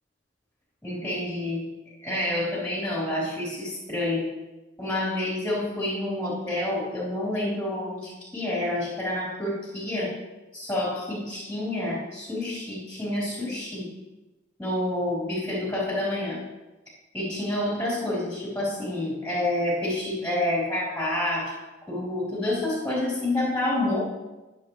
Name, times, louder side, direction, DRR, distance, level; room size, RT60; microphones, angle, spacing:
voice 1, 0.8-1.7 2.0-4.3 4.8-10.1 10.5-13.9 14.6-16.4 17.1-21.6 21.9-24.0, left 1 dB, 10° left, -7 dB, 4.3 m, -28 dB
20.5 x 7.7 x 3.3 m, 1.1 s
head